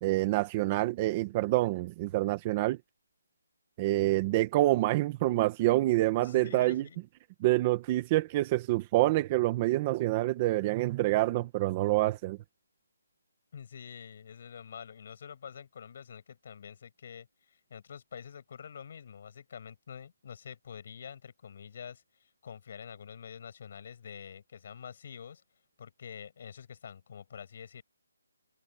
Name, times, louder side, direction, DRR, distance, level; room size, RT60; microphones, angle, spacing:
voice 1, 0.0-2.8 3.8-6.8 7.4-12.4, right 17 dB, 15° right, 1.0 m, -27 dB
voice 2, 6.2-7.0 13.5-25.4 25.8-27.8, left 7 dB, 35° left, 7.8 m, -47 dB
hypercardioid pair, 175°, 0 cm